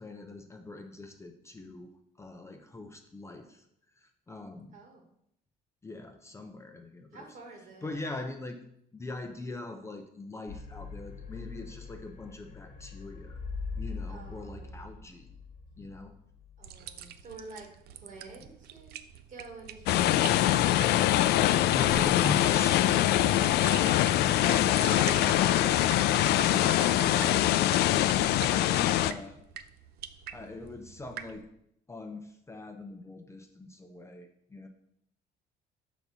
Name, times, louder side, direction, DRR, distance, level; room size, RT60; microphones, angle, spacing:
voice 1, 0.0-1.9 2.2-3.7 4.0-4.8 5.8-7.4 7.8-8.6 8.9-13.4 13.7-15.4 15.8-16.1 21.7-23.3 28.4-29.4 30.3-31.5 31.9-34.7, left 2 dB, 15° left, 5 dB, 0.6 m, -42 dB
voice 2, 4.7-5.0 7.1-7.9 14.1-14.7 15.7-15.8 16.6-17.7 17.9-19.0 19.3-20.4 24.2-25.9, right 3 dB, 50° right, 1 dB, 1.8 m, -48 dB
sound 1, 10.5-17.2, left 4 dB, 45° left, 1.3 m, -42 dB
sound 2, 16.6-31.4, right 10 dB, 70° right, 0.5 m, -44 dB
sound 3, 19.9-29.1, left 13 dB, 75° left, 0.4 m, -24 dB
5.6 x 4.1 x 6.0 m, 0.74 s
cardioid pair, 110°, 17 cm